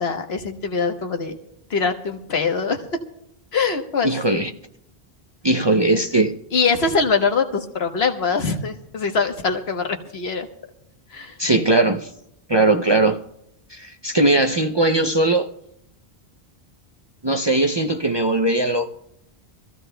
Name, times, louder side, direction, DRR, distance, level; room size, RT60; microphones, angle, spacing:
voice 1, 0.0-1.4 1.7-2.8 3.5-4.5 6.5-10.5 11.1-11.3, left 5 dB, 80° left, 1.4 m, -23 dB
voice 2, 4.0-4.5 5.4-6.3 11.4-12.1 12.5-13.2 13.7-15.5 17.2-18.9, right 2 dB, 35° right, 0.5 m, -19 dB
25.0 x 15.0 x 2.2 m
omnidirectional pair, 1.0 m